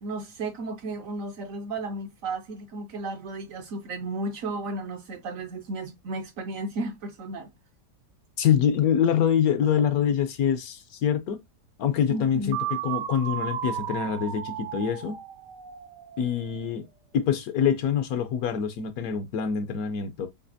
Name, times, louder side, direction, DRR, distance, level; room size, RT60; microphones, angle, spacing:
voice 1, 0.0-7.5 12.1-12.6, right 2 dB, 65° right, 0.9 m, -34 dB
voice 2, 8.4-11.4 11.8-15.2 16.2-16.9 17.1-20.3, left 8 dB, 70° left, 1.0 m, -25 dB
sound 1, 12.5-16.4, right 10 dB, 85° right, 1.4 m, -34 dB
6.6 x 2.8 x 2.6 m
omnidirectional pair, 1.8 m